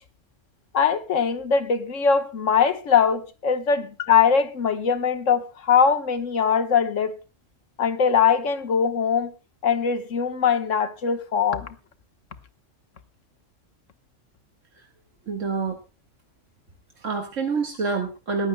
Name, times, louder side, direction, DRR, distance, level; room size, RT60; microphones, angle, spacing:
voice 1, 0.7-3.8 4.1-7.2 7.8-9.3 9.6-11.7, left 6 dB, 75° left, 1.5 m, -21 dB
voice 2, 15.3-15.8 17.0-18.5, right 4 dB, 75° right, 2.0 m, -27 dB
21.0 x 14.5 x 2.2 m
omnidirectional pair, 1.3 m